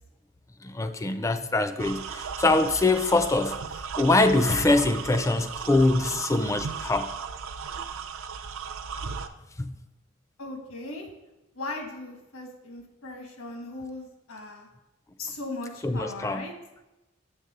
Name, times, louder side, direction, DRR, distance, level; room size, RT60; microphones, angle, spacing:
voice 1, 0.6-7.2 9.6-9.7 15.8-16.5, left 2 dB, 15° left, 10 dB, 0.4 m, -24 dB
sound 1, 1.8-9.3, right 6 dB, 75° right, 0.5 m, -36 dB
voice 2, 10.4-11.1 11.5-14.7 15.2-16.5, left 2 dB, 85° left, 3 dB, 1.4 m, -38 dB
7.9 x 3.5 x 6.6 m, 0.98 s
head